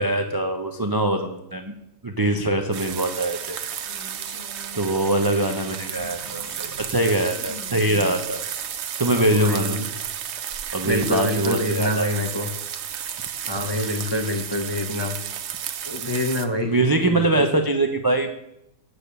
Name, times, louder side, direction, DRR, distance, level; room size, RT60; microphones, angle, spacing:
voice 1, 0.0-1.7 2.0-3.7 4.7-8.4 9.0-9.8 10.7-12.3 13.7-14.2 16.6-18.3, right 1 dB, 30° right, 5 dB, 0.4 m, -23 dB
sound 1, 2.7-16.5, right 9 dB, 60° right, 0.9 m, -33 dB
Female speech woman speaking, 3.8-7.0 7.3-8.8, equal, 65° left, 2.7 m, -43 dB
voice 2, 9.2-9.8 10.8-12.5 13.5-15.1 15.9-16.7 17.1-17.4, left 1 dB, 25° left, 2 dB, 0.6 m, -26 dB
7.9 x 6.7 x 6.7 m, 0.84 s
omnidirectional pair, 1.4 m